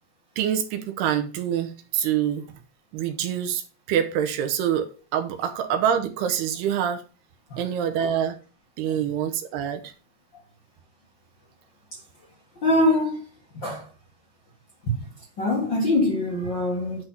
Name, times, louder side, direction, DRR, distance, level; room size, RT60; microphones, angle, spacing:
voice 1, 0.4-2.5 2.9-3.6 3.9-7.0 7.6-8.4 8.8-9.9, right 9 dB, 80° right, 3.1 m, -25 dB
voice 2, 12.6-13.2 13.5-13.9 14.8-15.0 15.4-17.0, left 1 dB, 50° left, 1.4 m, -23 dB
10.5 x 4.2 x 5.5 m
omnidirectional pair, 4.6 m